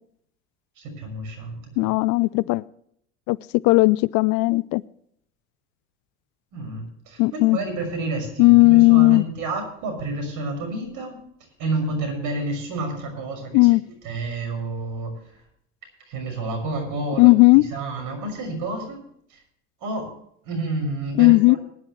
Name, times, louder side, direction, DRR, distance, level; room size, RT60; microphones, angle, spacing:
voice 1, 0.8-1.9 6.5-11.2 11.6-13.7 14.0-15.1 16.1-17.3 17.5-19.0 19.3-19.4 19.8-20.0 20.4-21.6, right 2 dB, 60° right, 5 dB, 6.0 m, -29 dB
voice 2, 1.8-2.6 3.3-3.4 3.6-4.8 7.2-7.6 8.4-9.2 13.5-13.8 17.2-17.6 21.2-21.6, left 23 dB, 55° left, 22 dB, 0.5 m, -15 dB
20.0 x 11.0 x 3.2 m, 0.68 s
hypercardioid pair, 85°, 36 cm